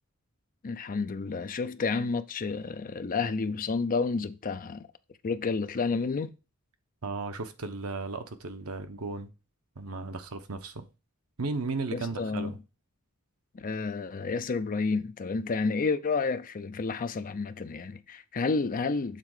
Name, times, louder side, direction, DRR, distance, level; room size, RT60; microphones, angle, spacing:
voice 1, 0.6-4.9 5.2-6.3 11.9-12.5 13.5-19.2, left 4 dB, 40° left, 0.5 m, -30 dB
voice 2, 7.0-9.3 9.8-10.8 11.4-12.6, right 3 dB, 80° right, 0.9 m, -35 dB
6.7 x 3.6 x 4.8 m
head